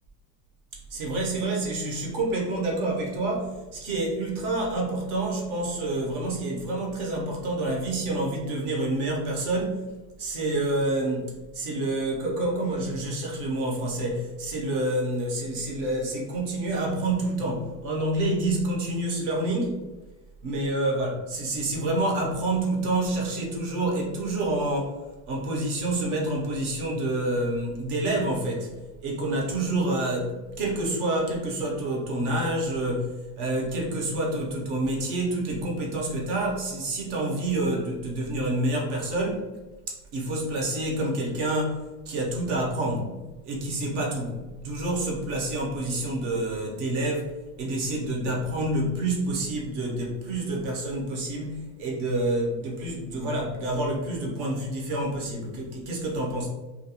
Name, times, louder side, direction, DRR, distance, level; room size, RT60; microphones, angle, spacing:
voice 1, 0.9-9.9 10.2-19.8 20.4-25.0 25.3-28.7 29.0-33.1 33.4-39.5 39.9-43.1 43.4-47.3 47.6-56.5, right 1 dB, 50° right, -1 dB, 0.7 m, -28 dB
2.4 x 2.2 x 2.7 m, 1.2 s
supercardioid pair, 175°, 48 cm